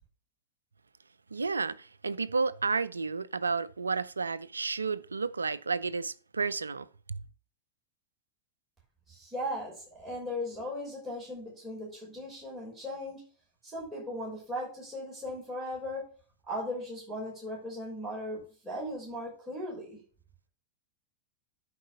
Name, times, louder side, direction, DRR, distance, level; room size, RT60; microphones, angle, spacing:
voice 1, 1.3-7.2, right 4 dB, 75° right, 0.4 m, -32 dB
voice 2, 9.1-13.2 13.6-16.1 16.5-20.0, left 1 dB, 5° right, 5.8 m, -38 dB
10.5 x 4.9 x 6.2 m
figure-of-eight pair, 90°, 0 cm